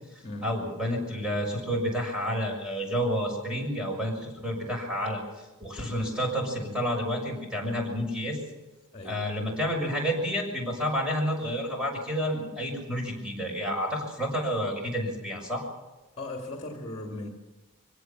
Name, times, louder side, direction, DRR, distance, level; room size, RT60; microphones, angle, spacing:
voice 1, 0.1-8.4 9.0-15.6, equal, 5° right, 0 dB, 6.5 m, -30 dB
voice 2, 8.9-9.3 16.2-17.3, left 2 dB, 30° left, 2 dB, 2.3 m, -37 dB
24.0 x 17.5 x 7.3 m, 1.1 s
head